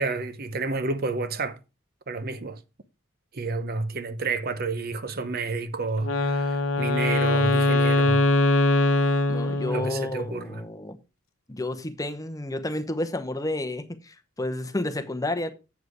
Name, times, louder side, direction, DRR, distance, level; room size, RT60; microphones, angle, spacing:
voice 1, 0.0-1.6 2.1-2.6 3.3-8.2 9.7-10.6, right 3 dB, 45° right, 0.8 m, -30 dB
Wind instrument woodwind instrument, 6.0-10.2, left 2 dB, 80° left, 0.9 m, -22 dB
voice 2, 9.3-11.0 11.5-15.5, left 1 dB, 15° left, 0.8 m, -31 dB
8.2 x 7.4 x 4.8 m
head